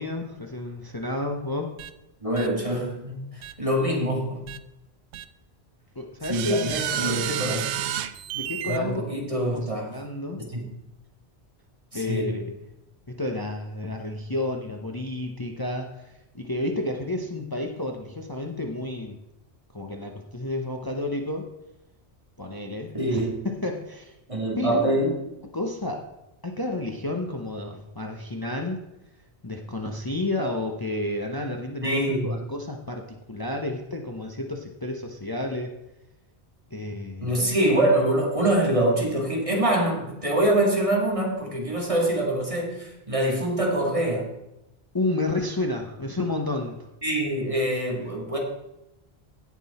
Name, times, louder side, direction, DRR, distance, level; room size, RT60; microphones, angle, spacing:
voice 1, 0.0-1.7 6.0-6.7 8.3-9.0 9.5-10.4 11.9-12.6 13.1-16.0 16.3-19.2 19.7-21.5 22.4-24.1 24.6-24.8 25.5-26.1 26.4-28.8 29.4-35.7 36.7-37.3 44.9-46.9, left 2 dB, 20° left, 2 dB, 0.9 m, -31 dB
sound 1, 1.8-1.9 2.4-2.5 3.4-3.5 4.5-4.6 5.1-5.2 6.2-8.8, right 11 dB, 85° right, 0.9 m, -30 dB
voice 2, 2.2-4.4 6.2-7.6 8.7-9.9 10.4-10.7 11.9-12.4 22.9-23.5 24.3-25.2 31.8-32.4 37.2-44.3 47.0-48.4, right 1 dB, 30° right, -1 dB, 2.2 m, -25 dB
16.5 x 6.2 x 4.2 m, 0.91 s
omnidirectional pair, 1.1 m